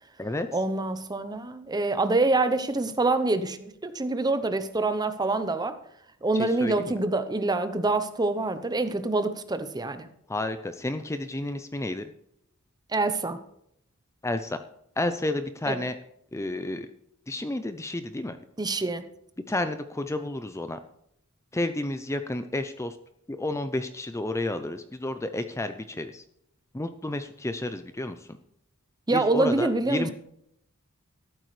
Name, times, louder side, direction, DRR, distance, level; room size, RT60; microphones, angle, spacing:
voice 1, 0.5-5.8 6.2-10.1 12.9-13.4 15.7-15.8 18.6-19.0 29.1-30.1, right 2 dB, 20° right, 10 dB, 0.8 m, -26 dB
voice 2, 6.3-7.0 10.3-12.1 14.2-14.6 15.0-15.9 16.3-16.9 17.3-18.4 19.5-20.8 21.5-23.0 23.3-26.2 26.7-28.2 29.1-30.1, left 2 dB, 15° left, 9 dB, 0.5 m, -31 dB
13.5 x 12.0 x 3.2 m, 0.74 s
head